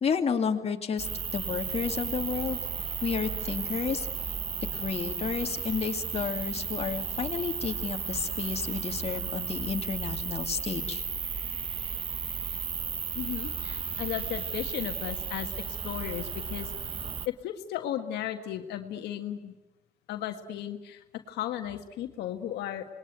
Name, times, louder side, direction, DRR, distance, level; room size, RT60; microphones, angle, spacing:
voice 1, 0.0-2.6 3.0-4.1 4.7-11.0, left 6 dB, 35° left, 3 dB, 2.5 m, -31 dB
sound 1, 1.0-17.3, right 6 dB, 30° right, 1.0 m, -34 dB
voice 2, 13.2-17.0 17.3-19.5 20.1-22.9, left 11 dB, 80° left, 6 dB, 1.7 m, -35 dB
27.0 x 21.0 x 9.3 m, 1.1 s
cardioid pair, 110°, 17 cm